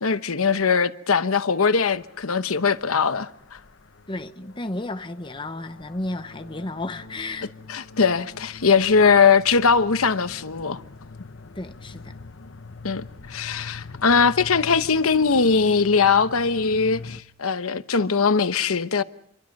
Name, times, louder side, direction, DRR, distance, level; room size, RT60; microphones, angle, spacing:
voice 1, 0.0-3.6 7.7-10.8 12.8-19.0, left 5 dB, 85° left, 1.0 m, -21 dB
sound 1, 1.9-17.2, left 3 dB, 60° left, 1.0 m, -43 dB
voice 2, 4.1-7.5 11.6-12.1, left 2 dB, 25° left, 0.9 m, -33 dB
27.5 x 23.5 x 5.3 m
head